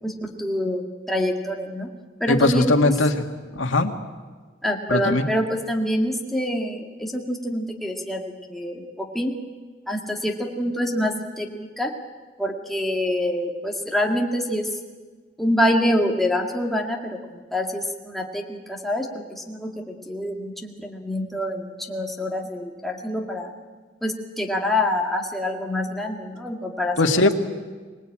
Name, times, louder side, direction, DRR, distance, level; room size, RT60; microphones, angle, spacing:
voice 1, 0.0-1.9 2.2-2.7 4.6-9.3 9.9-11.9 12.4-14.7 15.4-23.5 24.0-27.0, left 1 dB, ahead, 0 dB, 2.2 m, -26 dB
voice 2, 2.3-3.2 3.5-3.9 4.9-5.3 27.0-27.3, left 2 dB, 80° left, 4 dB, 2.0 m, -19 dB
25.0 x 19.5 x 8.8 m, 1.4 s
head